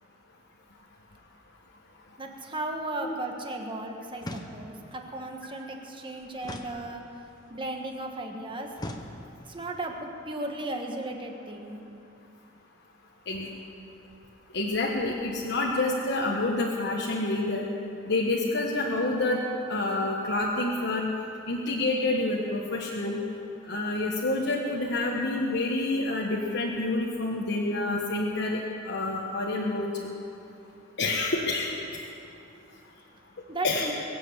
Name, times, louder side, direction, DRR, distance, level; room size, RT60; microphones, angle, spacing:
voice 1, 2.2-7.0 7.5-8.7 9.5-11.8 33.5-33.9, right 2 dB, 25° right, 2 dB, 1.5 m, -35 dB
sound 1, 4.2-4.9 6.4-7.4 8.8-9.6, left 1 dB, 20° left, 1.0 m, -40 dB
voice 2, 14.5-17.7 18.1-19.4 19.7-21.1 21.5-23.2 23.7-28.6 28.8-30.1 31.0-31.7 33.6-33.9, left 2 dB, 60° left, -2 dB, 1.3 m, -28 dB
23.0 x 7.7 x 8.0 m, 2.7 s
head